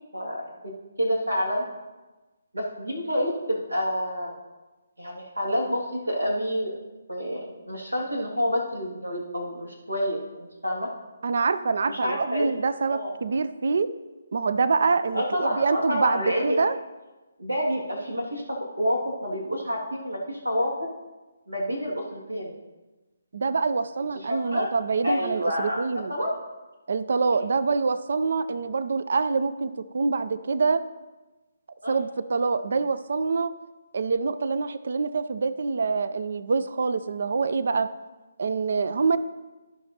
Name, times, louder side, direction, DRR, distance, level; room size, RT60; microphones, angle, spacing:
voice 1, 0.1-0.7 1.0-1.7 2.5-4.4 5.0-6.7 7.1-10.9 11.9-12.6 12.9-13.1 15.1-16.6 17.4-20.9 21.5-22.6 24.1-24.7 25.0-25.8 26.1-26.3 27.3-27.4 31.8-32.1, equal, 85° right, -2 dB, 2.2 m, -28 dB
voice 2, 11.2-13.9 14.3-16.8 23.3-26.1 26.9-30.8 31.9-33.5 33.9-37.9 38.4-39.2, right 4 dB, 55° right, 14 dB, 0.5 m, -25 dB
14.5 x 6.0 x 2.9 m, 1.2 s
figure-of-eight pair, 145°, 0 cm